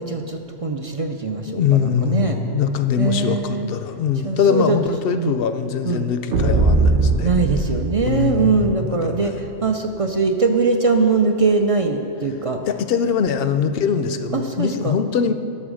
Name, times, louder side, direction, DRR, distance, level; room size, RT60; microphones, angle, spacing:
voice 1, 0.0-2.4 3.0-3.7 4.2-4.8 5.1-5.4 5.8-6.1 7.2-12.6 14.3-15.0, right 4 dB, 45° right, 4 dB, 0.4 m, -21 dB
voice 2, 1.4-7.3 8.0-9.4 12.7-15.3, left 7 dB, 60° left, 10 dB, 0.6 m, -22 dB
sound 1, 6.3-8.9, right 2 dB, 70° right, 1.1 m, -20 dB
12.5 x 6.1 x 6.3 m, 2.8 s
omnidirectional pair, 1.3 m